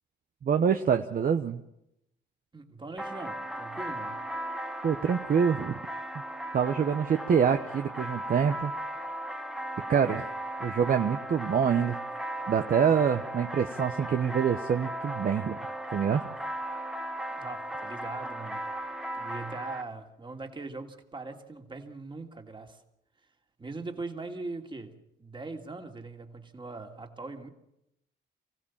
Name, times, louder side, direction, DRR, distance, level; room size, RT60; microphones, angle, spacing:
voice 1, 0.4-1.6 4.8-5.8 6.5-8.7 9.9-10.2 10.6-12.0 12.5-15.5 15.9-16.2, right 7 dB, 45° right, 7 dB, 1.0 m, -25 dB
voice 2, 2.5-4.2 17.3-18.7 19.1-22.8 23.6-27.5, right 3 dB, 25° right, 4 dB, 2.7 m, -41 dB
sound 1, 3.0-19.8, right 1 dB, ahead, 1.3 m, -37 dB
24.0 x 15.5 x 7.3 m, 0.81 s
cardioid pair, 90°, 20 cm